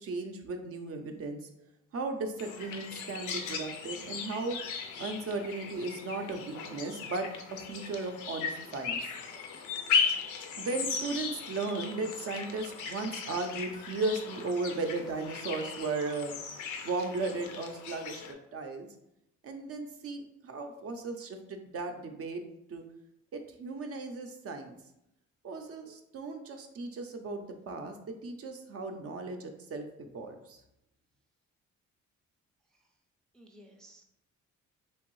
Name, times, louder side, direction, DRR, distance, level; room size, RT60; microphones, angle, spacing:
voice 1, 0.0-1.5 1.9-4.6 5.0-9.6 10.6-16.3 16.8-18.9 19.4-22.4 22.7-22.8 23.3-24.8 25.4-30.6, right 3 dB, 50° right, 5 dB, 0.5 m, -36 dB
sound 1, 2.4-18.3, left 6 dB, 80° left, 0.5 m, -37 dB
voice 2, 33.3-34.0, equal, 5° left, 0 dB, 0.4 m, -56 dB
3.1 x 2.6 x 3.0 m, 0.82 s
cardioid pair, 90°, 30 cm